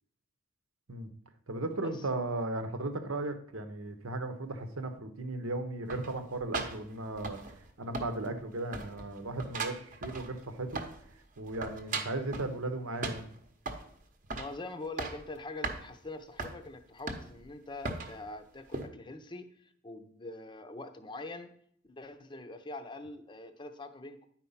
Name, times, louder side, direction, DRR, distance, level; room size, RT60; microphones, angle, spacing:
voice 1, 1.5-7.4 7.8-10.8 11.4-13.2, right 2 dB, 80° right, 8 dB, 1.0 m, -36 dB
sound 1, 5.9-7.7 7.9-8.5 8.7-11.1 11.4-12.5 13.0-13.9 14.3-14.6 14.8-15.3 15.6-15.8 16.4-16.6 17.1-17.5 17.8-18.2 18.7-18.9, right 3 dB, 40° right, 0.9 m, -38 dB
voice 2, 14.3-21.5 21.9-24.3, left 2 dB, 20° left, 8 dB, 0.6 m, -44 dB
10.0 x 4.5 x 5.6 m, 0.64 s
head